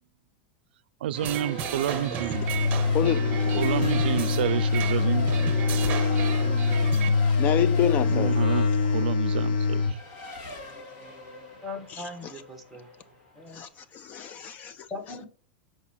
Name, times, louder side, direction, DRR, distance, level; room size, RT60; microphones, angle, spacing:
voice 1, 1.0-2.4 3.6-5.3 8.1-8.7 8.9-10.0, right 12 dB, 90° right, 0.4 m, -29 dB
Race car auto racing / Accelerating revving vroom / Mechanisms, 1.1-13.6, left 2 dB, 45° left, 1.9 m, -41 dB
sound 1, 1.2-7.1, right 8 dB, 30° right, 0.8 m, -34 dB
sound 2, 2.4-10.0, left 4 dB, 70° left, 0.8 m, -24 dB
voice 2, 2.9-3.6 7.4-8.4 11.9-12.3 13.5-14.9, left 10 dB, 30° left, 0.3 m, -29 dB
voice 3, 11.6-12.9 13.4-13.7 14.9-15.3, left 2 dB, ahead, 1.3 m, -39 dB
7.1 x 4.6 x 4.3 m
supercardioid pair, 160°, 5 cm